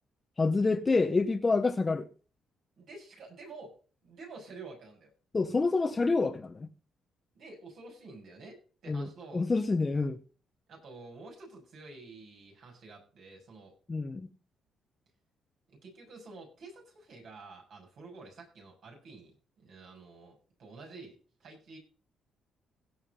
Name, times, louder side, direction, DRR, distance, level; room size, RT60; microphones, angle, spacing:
voice 1, 0.4-2.1 5.3-6.7 8.9-10.2 13.9-14.3, left 3 dB, 25° left, 0.8 m, -27 dB
voice 2, 2.8-3.7 4.0-5.1 7.3-8.6 8.8-9.4 10.7-13.7 15.8-19.3 19.6-21.8, right 3 dB, 65° right, 7.3 m, -49 dB
17.0 x 5.9 x 5.5 m
cardioid pair, 90°, 0 cm